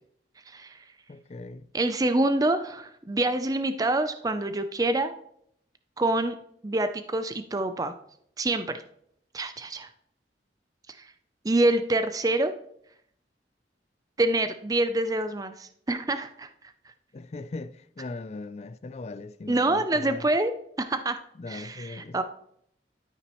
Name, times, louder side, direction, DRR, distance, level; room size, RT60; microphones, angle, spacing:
voice 1, 0.5-0.8 1.7-5.1 6.0-6.3 6.6-7.9 8.4-8.8 9.3-9.9 11.0-11.1 11.4-12.5 14.2-16.5 19.5-21.2 21.5-22.2, right 2 dB, 20° right, 0.5 m, -26 dB
voice 2, 1.1-1.7 17.1-20.3 21.3-22.2, left 3 dB, 40° left, 0.4 m, -39 dB
12.5 x 5.8 x 3.0 m
head